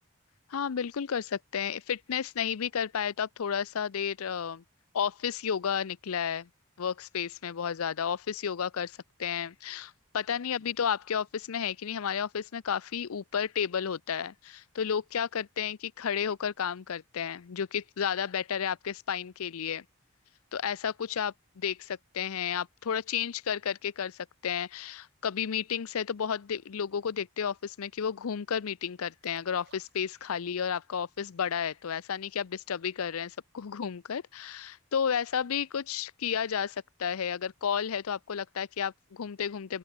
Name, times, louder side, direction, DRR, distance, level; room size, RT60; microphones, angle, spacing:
voice 1, 0.5-4.6 4.9-6.5 6.8-19.8 20.5-39.8, left 7 dB, 80° left, 0.5 m, -32 dB
sound 1, 29.2-30.8 31.1-31.2, right 5 dB, 50° right, 2.1 m, -63 dB
open air
head